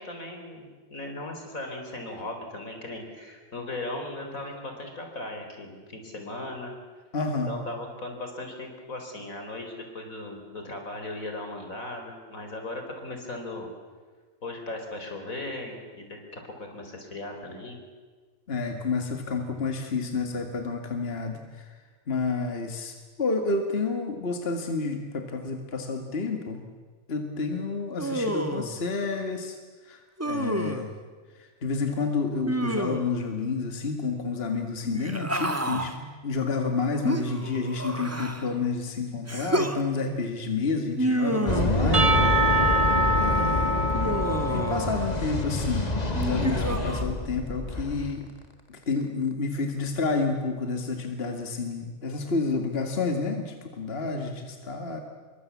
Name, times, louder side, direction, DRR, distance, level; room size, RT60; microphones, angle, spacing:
voice 1, 0.0-6.7 7.5-13.7 14.4-17.8, left 2 dB, 75° left, 4 dB, 4.6 m, -37 dB
voice 2, 7.1-7.6 18.5-21.7 22.1-26.6 27.1-29.6 29.8-30.9 31.3-42.2 43.1-44.0 44.5-48.3 48.7-55.0, left 4 dB, 45° left, 4 dB, 2.2 m, -30 dB
Human voice, 28.0-28.8 30.2-30.9 32.5-33.2 34.8-35.9 37.0-38.5 39.3-39.8 41.0-42.5 43.9-45.1 46.1-47.0, right 1 dB, 10° right, 1.6 m, -29 dB
sound 1, 41.5-48.2, left 2 dB, 30° left, 2.0 m, -27 dB
Percussion / Church bell, 41.9-45.6, right 1 dB, 50° right, 2.2 m, -25 dB
26.0 x 23.5 x 8.5 m, 1.5 s
omnidirectional pair, 1.4 m